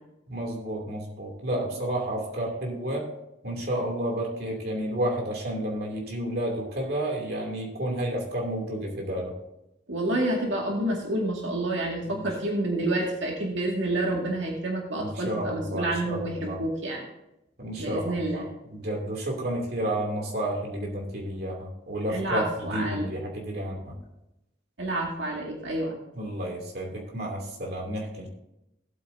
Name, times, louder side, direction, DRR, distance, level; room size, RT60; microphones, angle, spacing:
voice 1, 0.3-3.1 3.4-9.3 12.1-12.2 15.0-16.6 17.6-22.4 22.7-23.9 26.1-28.3, right 1 dB, 55° right, -1 dB, 2.9 m, -31 dB
voice 2, 9.9-17.0 17.8-18.5 22.1-23.1 24.8-25.9, right 1 dB, 90° right, -1 dB, 2.2 m, -28 dB
17.5 x 8.2 x 2.8 m, 0.88 s
head